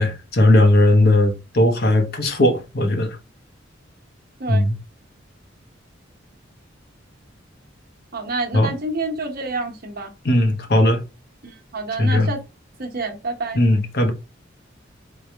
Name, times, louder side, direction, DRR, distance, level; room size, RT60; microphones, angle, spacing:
voice 1, 0.0-3.2 4.5-4.7 8.5-8.7 10.2-11.0 12.0-12.3 13.5-14.1, left 1 dB, 55° left, 1.0 m, -17 dB
voice 2, 8.1-10.1 11.4-12.4 12.8-13.6, right 3 dB, 50° right, 1.0 m, -28 dB
3.8 x 3.3 x 3.4 m
head